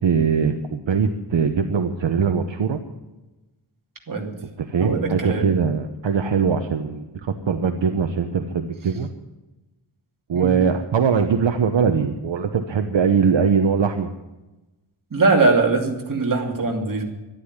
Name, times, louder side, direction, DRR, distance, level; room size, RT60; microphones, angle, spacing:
voice 1, 0.0-2.8 4.6-9.1 10.3-14.1, right 6 dB, 70° right, 6 dB, 1.0 m, -21 dB
voice 2, 4.8-5.4 10.3-10.6 15.1-17.0, right 3 dB, 40° right, 1 dB, 2.7 m, -21 dB
12.0 x 12.0 x 9.7 m, 1.1 s
wide cardioid pair, 155°, 47 cm